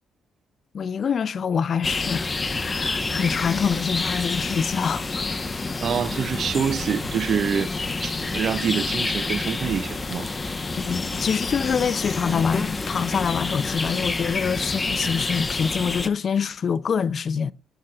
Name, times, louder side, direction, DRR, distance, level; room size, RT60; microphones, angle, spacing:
voice 1, 0.7-5.3 10.8-17.5, left 6 dB, 50° left, 0.5 m, -25 dB
sound 1, 1.8-16.1, left 3 dB, 25° left, 0.9 m, -28 dB
voice 2, 5.8-7.7 8.0-10.3, right 7 dB, 55° right, 0.5 m, -26 dB
sound 2, 6.4-14.0, right 4 dB, 40° right, 4.3 m, -49 dB
17.5 x 7.9 x 2.3 m
cardioid pair, 90°, 0 cm